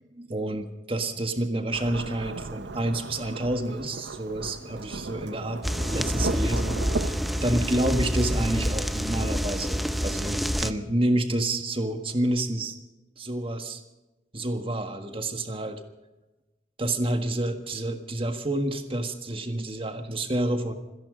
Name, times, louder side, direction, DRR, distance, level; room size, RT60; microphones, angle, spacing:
voice 1, 0.1-12.7 13.2-13.8 14.3-15.8 16.8-20.7, right 1 dB, 30° right, 6 dB, 1.6 m, -29 dB
Thunderstorm / Rain, 1.7-7.4, right 3 dB, 65° right, 0.7 m, -36 dB
sound 1, 5.6-10.7, equal, ahead, 0.6 m, -27 dB
26.5 x 10.5 x 5.0 m, 1.1 s
head